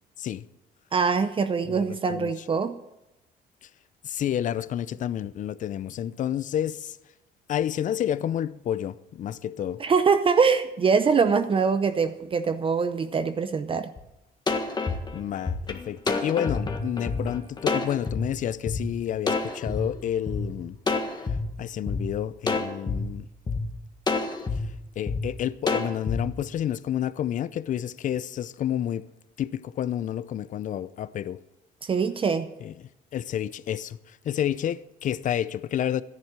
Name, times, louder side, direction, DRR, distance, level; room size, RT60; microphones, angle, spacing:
voice 1, 0.9-2.8 9.8-13.9 31.8-32.5, right 5 dB, 30° right, 0.7 m, -23 dB
voice 2, 1.6-2.3 3.6-3.7 4.0-7.0 7.5-9.8 15.1-20.8 21.6-23.3 25.0-29.1 29.4-31.4 32.6-32.7 33.1-36.0, left 10 dB, 50° left, 0.6 m, -30 dB
sound 1, 14.0-14.1 14.5-18.2 18.7-18.8 19.3-20.4 20.9-21.4 21.9-22.0 22.5-23.0 23.5-23.6 24.1-24.6 25.1-25.2 25.7-26.2, left 4 dB, 25° left, 1.7 m, -27 dB
13.0 x 10.5 x 6.2 m
cardioid pair, 110°, 17 cm